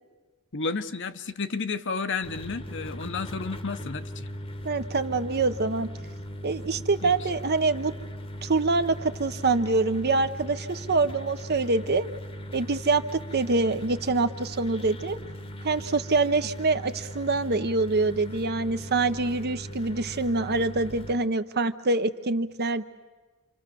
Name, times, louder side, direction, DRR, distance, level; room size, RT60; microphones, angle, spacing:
voice 1, 0.5-4.3 7.0-7.1, left 4 dB, 55° left, 9 dB, 1.0 m, -32 dB
sound 1, 2.2-21.2, equal, 25° left, 1.1 m, -39 dB
voice 2, 4.6-5.9 6.4-7.9 8.4-12.1 12.5-15.2 15.6-22.8, right 3 dB, 45° right, 10 dB, 0.9 m, -25 dB
28.5 x 26.0 x 6.9 m, 1.3 s
head